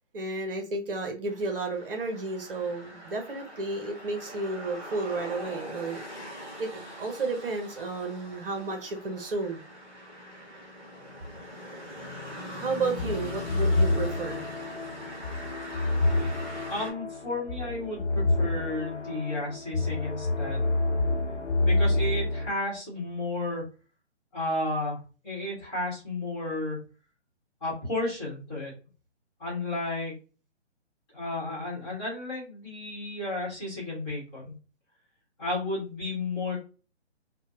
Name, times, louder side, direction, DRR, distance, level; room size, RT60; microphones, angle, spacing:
voice 1, 0.1-6.0 6.6-9.6 12.5-14.4, right 3 dB, 50° right, 4 dB, 0.8 m, -32 dB
sound 1, 1.3-16.9, left 1 dB, 10° right, 0.4 m, -42 dB
sound 2, 13.0-22.5, left 2 dB, 90° left, 0.9 m, -28 dB
voice 2, 16.7-20.7 21.6-23.6 24.3-26.8 27.6-28.7 29.4-30.1 31.1-34.5 35.4-36.6, left 2 dB, 15° left, -5 dB, 1.2 m, -33 dB
3.4 x 2.2 x 2.6 m, 0.34 s
hypercardioid pair, 155°, 34 cm